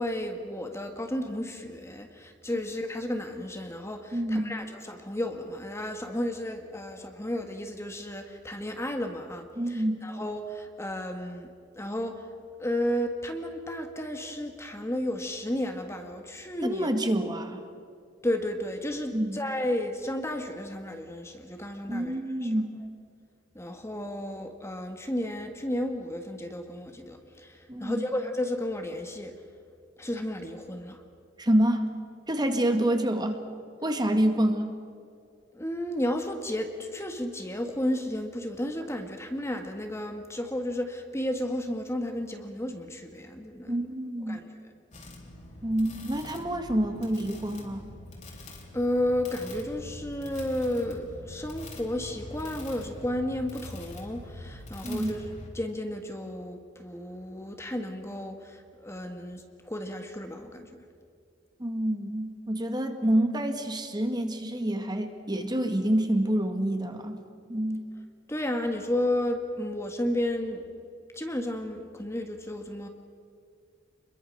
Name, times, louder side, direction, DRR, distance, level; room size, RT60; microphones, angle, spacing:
voice 1, 0.0-11.5 11.7-12.3 12.6-16.9 18.2-22.5 23.5-29.3 30.0-31.0 35.5-43.9 44.3-44.7 48.7-60.8 68.3-70.7 71.1-72.9, left 1 dB, 15° left, 5 dB, 1.5 m, -33 dB
voice 2, 4.1-4.6 9.6-10.1 16.7-17.6 19.1-19.4 21.9-22.8 27.7-28.0 31.4-31.9 32.3-33.4 33.8-34.8 43.7-44.4 45.6-47.9 54.8-55.1 61.6-67.2 67.5-67.8, right 1 dB, 25° right, 6 dB, 1.9 m, -27 dB
sound 1, 44.9-55.5, left 1 dB, 40° left, 4.0 m, -44 dB
27.5 x 22.0 x 6.4 m, 2.3 s
head